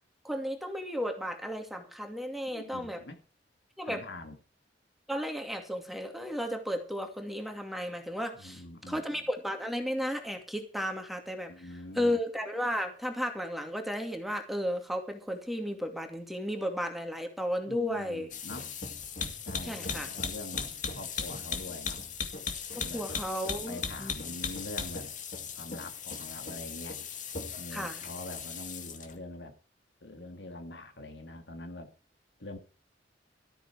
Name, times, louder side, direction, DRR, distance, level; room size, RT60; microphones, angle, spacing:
voice 1, 0.2-3.0 3.8-4.0 5.1-11.7 11.9-18.3 19.6-20.1 22.7-24.1 27.7-28.0, equal, ahead, 2.4 m, -34 dB
voice 2, 2.5-3.2 3.8-4.4 8.3-9.2 11.5-12.2 17.7-18.7 19.4-22.0 22.8-23.0 23.5-25.1 25.5-27.0 27.6-29.6 30.0-31.9 32.4-32.6, left 1 dB, 75° left, 2.2 m, -44 dB
sound 1, 18.3-29.2, left 5 dB, 45° left, 2.1 m, -37 dB
13.5 x 13.5 x 4.7 m
head